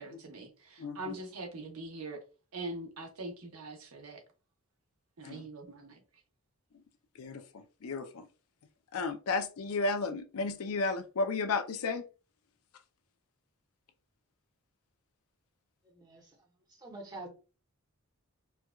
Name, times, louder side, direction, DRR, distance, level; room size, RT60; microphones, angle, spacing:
voice 1, 0.0-2.2 2.5-4.2 5.2-6.0, right 2 dB, 80° right, 0.9 m, -42 dB
voice 2, 0.8-1.1 5.2-5.5 7.2-8.3 8.9-12.1, left 3 dB, 75° left, 0.5 m, -33 dB
voice 3, 15.8-16.3 16.8-17.3, right 2 dB, 20° right, 0.8 m, -46 dB
4.4 x 2.3 x 2.2 m
head